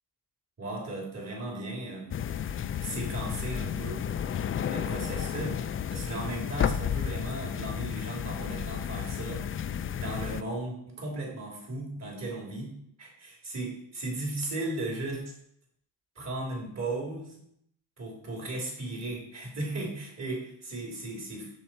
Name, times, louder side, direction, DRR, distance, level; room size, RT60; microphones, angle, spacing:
voice 1, 0.6-2.2 2.8-4.0 4.7-5.5 5.9-9.5 10.0-12.7 13.0-15.2 16.2-17.4 18.0-21.5, right 2 dB, 45° right, -2 dB, 3.7 m, -36 dB
sound 1, 2.1-10.4, left 8 dB, 35° left, 0.4 m, -32 dB
7.0 x 6.6 x 4.6 m, 0.73 s
cardioid pair, 110°, 37 cm